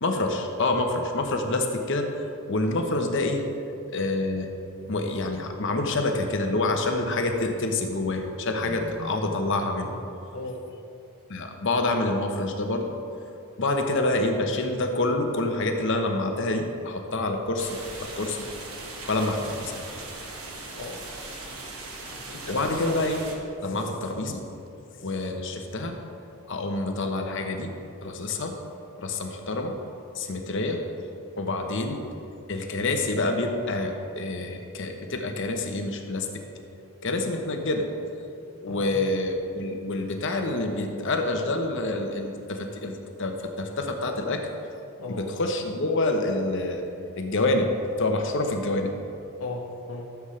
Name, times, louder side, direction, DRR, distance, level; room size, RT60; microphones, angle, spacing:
voice 1, 0.0-3.4 3.9-4.5 4.9-9.9 11.3-12.9 13.6-18.4 19.1-19.8 22.5-23.2 23.6-24.4 25.0-26.0 26.5-27.7 28.0-28.5 29.0-29.8 30.1-30.8 31.4-32.0 32.5-36.3 37.0-37.9 38.6-44.4 45.1-46.8 47.2-47.7 48.0-48.9, left 2 dB, 55° left, 4 dB, 0.9 m, -27 dB
sound 1, 17.6-23.3, right 2 dB, 75° right, 1.4 m, -39 dB
voice 2, 21.9-22.6 23.7-23.9 38.7-38.9 45.0-45.3 49.4-50.1, left 2 dB, 80° left, 2 dB, 1.1 m, -36 dB
13.5 x 7.1 x 3.3 m, 2.7 s
head